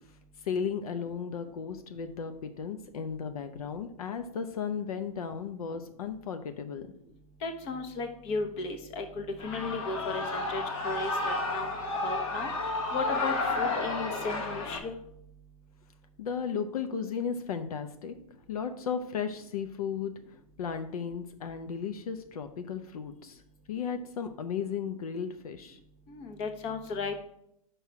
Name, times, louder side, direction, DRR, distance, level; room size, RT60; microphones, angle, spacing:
voice 1, 0.4-6.9 16.2-18.1 18.5-23.4 23.7-25.8, left 6 dB, 80° left, 8 dB, 0.6 m, -35 dB
voice 2, 7.4-11.7 12.0-12.5 12.9-14.9 26.1-27.2, left 3 dB, 35° left, 5 dB, 1.0 m, -35 dB
Shout / Cheering, 9.4-14.8, left 2 dB, 60° left, 1.4 m, -32 dB
5.6 x 5.5 x 4.7 m, 0.75 s
hypercardioid pair, 140°, 19 cm